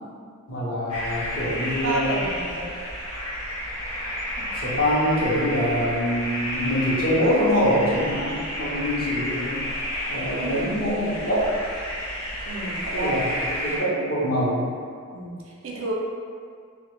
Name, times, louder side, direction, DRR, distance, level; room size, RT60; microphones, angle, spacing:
voice 1, 0.5-2.2 4.4-9.6 10.1-11.5 12.9-13.3 13.6-14.7, equal, 45° left, -7 dB, 0.6 m, -24 dB
sound 1, 0.9-13.8, equal, 85° left, 0.8 m, -31 dB
voice 2, 1.8-2.6 10.4-10.7 12.5-13.1 15.1-15.9, right 2 dB, 60° right, -3 dB, 0.4 m, -31 dB
2.1 x 2.0 x 2.9 m, 2.2 s
head